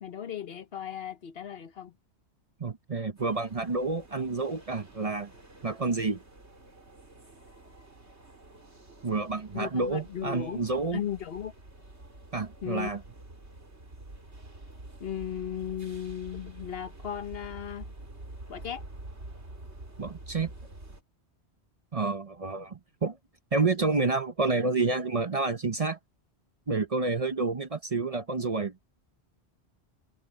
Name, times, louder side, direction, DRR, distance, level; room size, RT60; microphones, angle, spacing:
voice 1, 0.0-1.9 9.5-10.6 10.9-11.5 12.6-12.9 15.0-17.9 18.5-18.8, left 9 dB, 60° left, 1.1 m, -36 dB
voice 2, 2.6-5.3 5.6-6.2 9.0-11.0 12.3-13.0 20.0-20.5 21.9-23.2 23.5-26.0 26.7-28.8, right 3 dB, 35° right, 0.8 m, -29 dB
sound 1, 3.2-21.0, right 2 dB, 75° right, 4.2 m, -48 dB
omnidirectional pair, 1.1 m